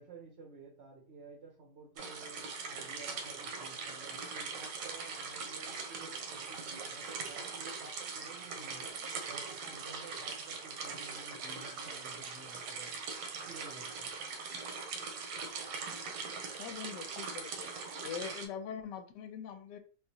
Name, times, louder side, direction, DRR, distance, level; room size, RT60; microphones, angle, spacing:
voice 1, 0.0-13.1 13.4-14.1, right 3 dB, 60° right, 0 dB, 0.7 m, -53 dB
sound 1, 2.0-18.5, right 4 dB, 80° right, 1.4 m, -41 dB
voice 2, 16.6-17.7 18.0-19.8, left 7 dB, 80° left, 7 dB, 1.2 m, -42 dB
3.9 x 2.4 x 2.7 m, 0.38 s
omnidirectional pair, 1.9 m